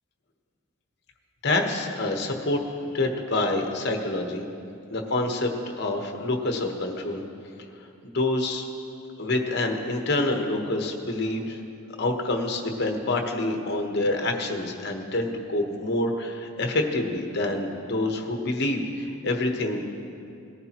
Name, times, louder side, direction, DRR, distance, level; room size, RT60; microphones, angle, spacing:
voice 1, 1.4-2.6 2.9-4.4 4.9-7.2 8.0-8.6 9.2-11.6 12.0-19.9, left 2 dB, 55° left, 3 dB, 1.1 m, -27 dB
19.0 x 11.5 x 3.0 m, 2.6 s
head